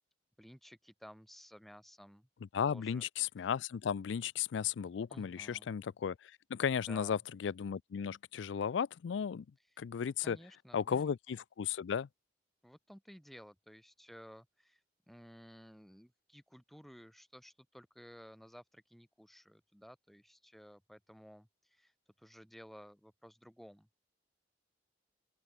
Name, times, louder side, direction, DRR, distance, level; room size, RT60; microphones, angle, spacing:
voice 1, 0.4-2.3 2.6-3.0 5.1-5.7 6.7-7.2 10.2-11.1 12.6-14.8 15.1-21.9 22.2-24.0, equal, ahead, 7.3 m, -55 dB
voice 2, 2.5-9.5 9.8-10.4 10.7-12.1, left 7 dB, 80° left, 0.4 m, -35 dB
open air
head